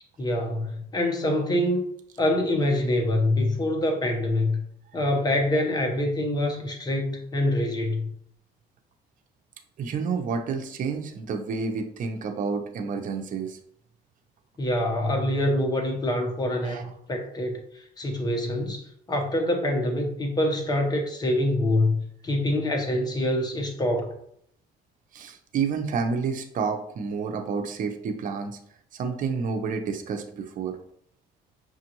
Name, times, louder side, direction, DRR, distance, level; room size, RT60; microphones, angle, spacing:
voice 1, 0.2-1.9 2.2-4.6 4.9-8.1 14.6-24.1, left 1 dB, 25° left, 3 dB, 0.9 m, -25 dB
voice 2, 9.8-13.6 16.6-16.8 25.1-28.6 28.9-30.8, right 5 dB, 50° right, 5 dB, 0.7 m, -29 dB
6.1 x 2.5 x 2.9 m, 0.69 s
cardioid pair, 110°, 17 cm